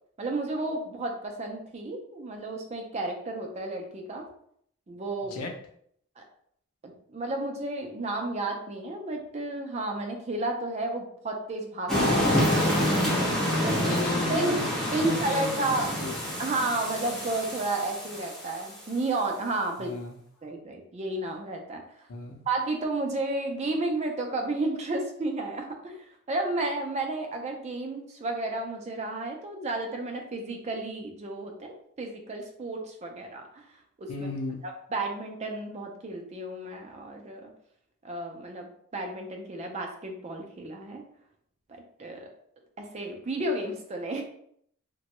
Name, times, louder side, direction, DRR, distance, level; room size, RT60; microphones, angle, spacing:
voice 1, 0.2-4.3 4.9-5.4 6.2-6.3 6.8-11.9 12.2-12.4 13.5-14.0 14.3-14.6 14.9-16.0 16.4-19.9 20.4-22.1 22.5-33.7 34.0-34.3 34.6-37.5 38.0-41.0 41.7-42.3 42.8-44.2, right 2 dB, 30° right, 2 dB, 0.4 m, -32 dB
voice 2, 11.9-12.4 13.8-16.2 19.8-20.2 22.1-22.4 34.1-34.6, left 2 dB, 90° left, 2 dB, 0.6 m, -35 dB
sound 1, 11.9-18.6, left 1 dB, ahead, 0.8 m, -27 dB
3.0 x 2.2 x 2.9 m, 0.68 s
head